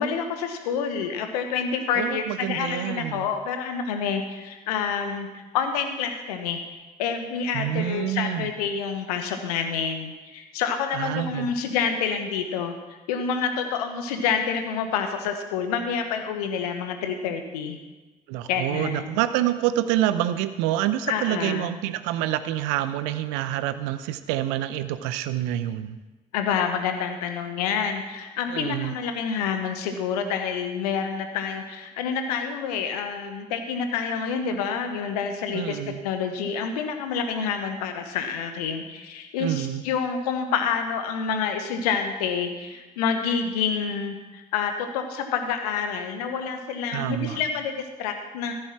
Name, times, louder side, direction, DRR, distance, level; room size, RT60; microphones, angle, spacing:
voice 1, 0.0-17.8 18.5-19.2 21.1-21.7 26.3-48.5, left 6 dB, 80° left, 6 dB, 1.1 m, -28 dB
voice 2, 2.0-3.3 7.5-8.5 10.9-11.6 18.3-26.0 28.5-29.0 35.5-36.0 39.4-39.9 46.9-47.4, right 13 dB, 70° right, 13 dB, 0.7 m, -27 dB
14.0 x 7.8 x 6.0 m, 1.2 s
figure-of-eight pair, 40°, 20 cm